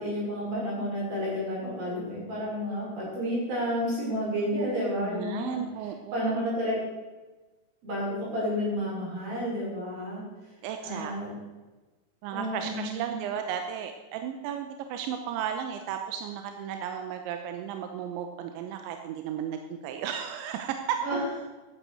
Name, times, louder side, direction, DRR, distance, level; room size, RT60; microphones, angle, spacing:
voice 1, 0.0-5.6 6.1-6.8 7.8-10.2 10.8-11.3 12.3-13.1 21.0-21.2, equal, 45° right, -6 dB, 7.6 m, -31 dB
voice 2, 5.0-6.4 10.6-11.1 12.2-21.0, right 8 dB, 80° right, 6 dB, 2.9 m, -34 dB
12.0 x 11.0 x 6.7 m, 1.2 s
omnidirectional pair, 5.7 m